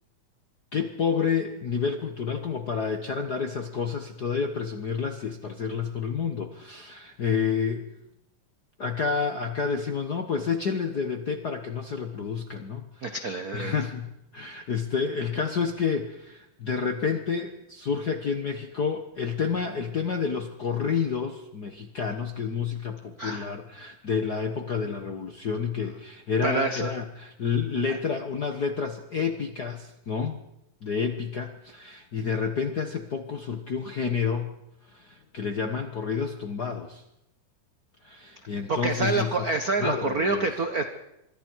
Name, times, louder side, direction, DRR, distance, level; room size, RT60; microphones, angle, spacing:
voice 1, 0.7-7.9 8.8-30.4 30.8-34.6 34.9-37.0 38.0-39.5 39.8-40.5, left 6 dB, 60° left, 6 dB, 1.0 m, -29 dB
voice 2, 13.0-13.7 23.2-23.5 26.4-26.9 27.9-28.0 38.7-40.8, right 3 dB, 75° right, 7 dB, 0.8 m, -27 dB
25.5 x 23.0 x 4.7 m, 0.86 s
omnidirectional pair, 3.6 m